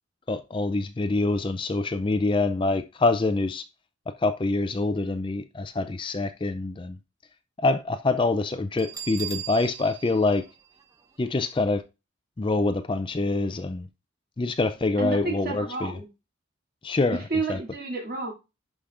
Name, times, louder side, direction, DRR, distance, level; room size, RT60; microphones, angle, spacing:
voice 1, 0.3-3.6 4.2-7.0 7.6-10.4 11.2-11.8 12.4-13.9 14.4-15.9 16.8-17.2 17.5-17.6, left 2 dB, 25° left, 0.4 m, -25 dB
Bell, 8.8-11.5, right 9 dB, 15° right, 0.7 m, -39 dB
voice 2, 15.0-16.1 17.1-18.3, right 3 dB, 50° right, 2.7 m, -30 dB
11.0 x 5.0 x 2.5 m
head